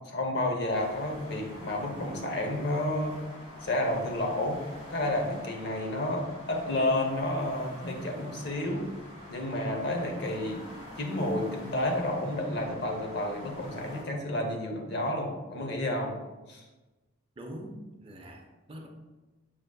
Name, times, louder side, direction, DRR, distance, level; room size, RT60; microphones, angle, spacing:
voice 1, 0.1-3.2 3.6-4.6 4.9-8.9 9.3-10.6 11.0-16.1 16.5-16.6, left 1 dB, 55° left, 2 dB, 0.7 m, -30 dB
sound 1, 0.7-14.0, left 1 dB, 30° left, 1.5 m, -46 dB
voice 2, 17.4-18.9, equal, 25° right, 2 dB, 0.4 m, -44 dB
6.0 x 3.8 x 2.3 m, 1.2 s
head